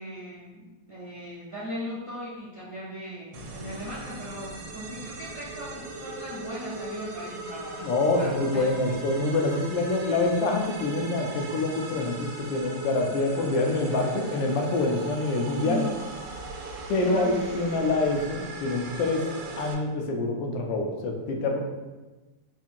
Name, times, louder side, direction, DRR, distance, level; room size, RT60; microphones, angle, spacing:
voice 1, 0.0-7.9 8.1-8.9 15.6-15.9 17.0-17.3, equal, 45° right, -9 dB, 0.4 m, -38 dB
sound 1, 3.3-19.7, right 3 dB, 80° right, 1.3 m, -39 dB
voice 2, 7.8-15.8 16.9-19.3 19.6-21.6, left 2 dB, 85° left, 2 dB, 1.3 m, -26 dB
4.2 x 2.7 x 2.5 m, 1.2 s
omnidirectional pair, 2.0 m